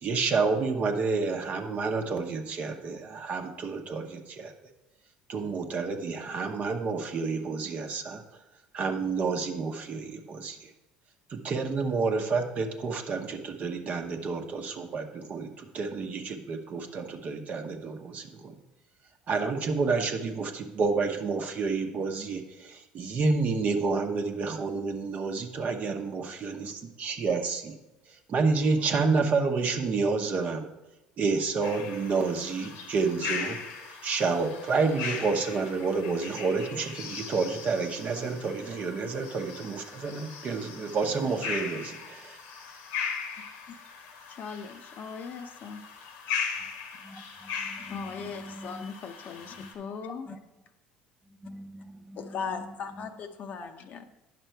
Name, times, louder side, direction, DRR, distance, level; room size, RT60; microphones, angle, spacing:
voice 1, 0.0-4.5 5.3-8.2 8.7-10.7 11.3-18.5 19.3-27.7 28.1-30.7 31.2-33.6 34.0-42.4, right 4 dB, 45° right, 4 dB, 0.9 m, -29 dB
sound 1, 31.6-49.7, left 6 dB, 80° left, 1.2 m, -39 dB
voice 2, 44.3-45.8 47.8-50.4 52.2-54.1, left 6 dB, 50° left, 6 dB, 0.7 m, -39 dB
voice 3, 47.0-48.9 49.6-49.7 50.3-50.4 51.2-53.1 53.6-53.7, equal, 10° right, 4 dB, 1.5 m, -46 dB
9.1 x 6.0 x 4.5 m, 0.98 s
supercardioid pair, 90°, 3 cm